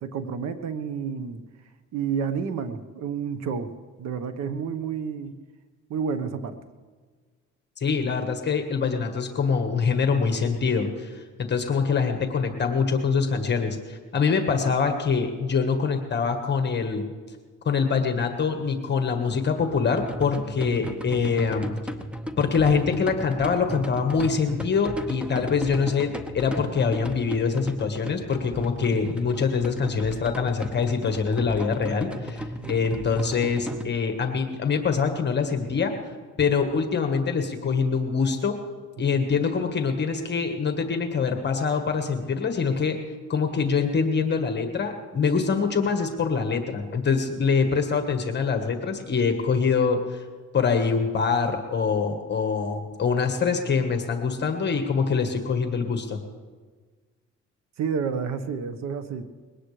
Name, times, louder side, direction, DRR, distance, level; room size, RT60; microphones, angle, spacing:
voice 1, 0.0-1.4 1.9-3.7 4.0-5.4 5.9-6.5 32.6-32.7 57.8-59.2, right 6 dB, 65° right, 10 dB, 1.3 m, -30 dB
voice 2, 7.8-17.0 17.6-21.7 22.4-35.9 36.4-38.6 39.0-43.0 43.3-50.2 50.5-56.2, left 5 dB, 35° left, 5 dB, 1.5 m, -24 dB
sound 1, 20.0-33.8, equal, 5° right, 0.9 m, -35 dB
21.0 x 18.0 x 3.3 m, 1.5 s
cardioid pair, 125°, 30 cm